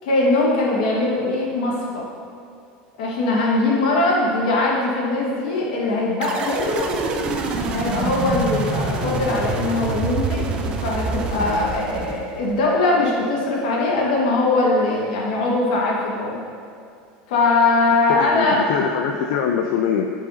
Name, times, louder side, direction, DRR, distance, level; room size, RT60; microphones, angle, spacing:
voice 1, 0.0-2.1 3.0-6.9 7.7-16.4 17.3-18.6, left 2 dB, 80° left, -3 dB, 1.5 m, -21 dB
sound 1, 6.2-12.7, right 3 dB, 25° right, 0.4 m, -26 dB
voice 2, 18.1-20.1, left 7 dB, 55° left, 3 dB, 0.3 m, -23 dB
8.4 x 4.8 x 2.7 m, 2.4 s
supercardioid pair, 170°, 4 cm